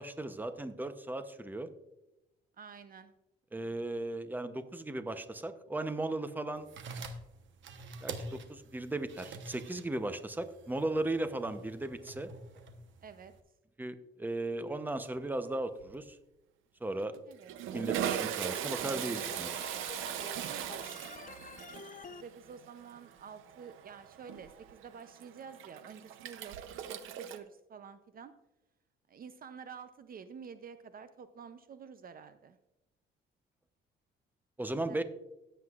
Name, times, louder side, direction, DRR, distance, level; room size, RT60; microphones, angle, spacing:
voice 1, 0.0-1.7 3.5-6.7 8.0-12.3 13.8-16.2 16.8-17.1 17.7-19.6 34.6-35.0, right 2 dB, 10° right, 10 dB, 0.8 m, -36 dB
voice 2, 2.6-3.1 13.0-13.3 17.3-17.7 20.5-21.4 21.7-28.3 29.1-32.6 34.9-35.0, right 6 dB, 45° right, 11 dB, 0.6 m, -50 dB
sound 1, 6.6-13.4, right 3 dB, 75° right, 1.1 m, -47 dB
Toilet flush, 15.1-15.5 15.8-16.0 16.9-27.4, right 10 dB, 90° right, 0.7 m, -39 dB
Organ, 18.5-22.2, left 5 dB, 40° left, 0.8 m, -48 dB
17.0 x 8.0 x 2.4 m, 0.94 s
cardioid pair, 90°, 20 cm